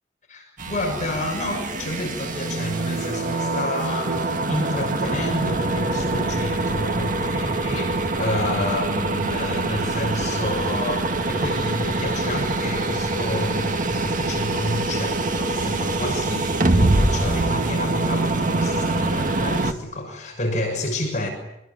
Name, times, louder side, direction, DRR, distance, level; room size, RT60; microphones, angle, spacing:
sound 1, 0.6-19.7, right 2 dB, 40° right, 2.0 m, -24 dB
voice 1, 0.7-21.3, left 1 dB, 40° left, 2 dB, 6.6 m, -29 dB
26.0 x 22.0 x 9.9 m, 0.84 s
head